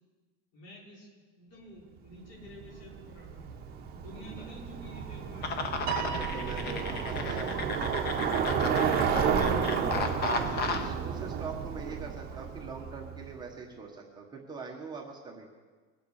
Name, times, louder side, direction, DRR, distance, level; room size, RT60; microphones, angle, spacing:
voice 1, 0.5-3.6 4.0-5.7 6.2-7.5 8.7-10.9, left 1 dB, 65° left, -3 dB, 5.7 m, -50 dB
Bicycle, 2.4-13.3, right 7 dB, 30° right, 1.4 m, -32 dB
sound 1, 5.4-10.9, left 4 dB, 30° left, 1.0 m, -34 dB
Piano, 5.9-7.4, right 10 dB, 65° right, 1.2 m, -37 dB
voice 2, 6.0-7.5 9.4-15.5, right 4 dB, 15° right, -1 dB, 1.5 m, -42 dB
23.0 x 8.4 x 6.6 m, 1.5 s
cardioid pair, 170°, 31 cm